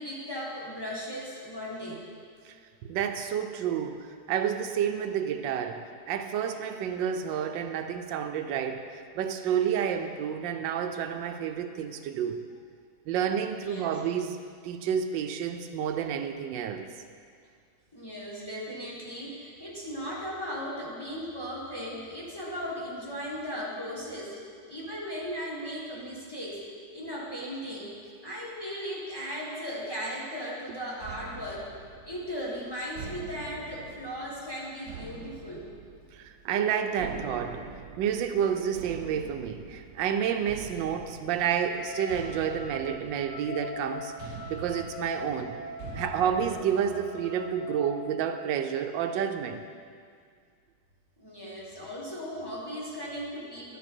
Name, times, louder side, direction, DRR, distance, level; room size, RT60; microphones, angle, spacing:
voice 1, 0.0-2.0 13.6-14.0 17.9-24.4 24.7-26.6 26.9-28.0 28.2-31.7 32.0-35.7 45.9-46.0 51.2-53.8, equal, 15° left, -5 dB, 1.2 m, -37 dB
voice 2, 2.8-12.4 13.1-14.4 14.6-16.9 36.1-37.6 38.0-44.1 44.5-45.5 45.9-49.6, right 8 dB, 85° right, 7 dB, 1.3 m, -30 dB
sound 1, 31.0-46.6, right 5 dB, 65° right, 1.2 m, -45 dB
Wind instrument woodwind instrument, 41.6-48.2, left 3 dB, 55° left, 1.2 m, -42 dB
11.0 x 7.1 x 4.4 m, 2.2 s
omnidirectional pair, 2.0 m